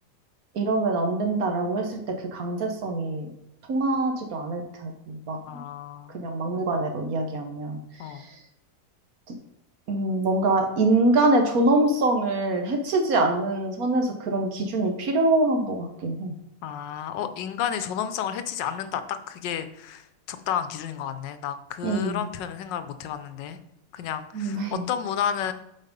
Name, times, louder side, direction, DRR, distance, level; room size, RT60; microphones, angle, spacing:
voice 1, 0.5-3.3 3.7-5.6 6.1-8.4 9.9-16.3 21.8-22.2 24.3-24.8, right 2 dB, 55° right, 4 dB, 1.3 m, -25 dB
voice 2, 5.5-6.2 8.0-8.3 16.6-23.6 23.9-25.5, left 9 dB, 80° left, 10 dB, 1.3 m, -31 dB
8.2 x 4.5 x 5.2 m, 0.80 s
omnidirectional pair, 2.0 m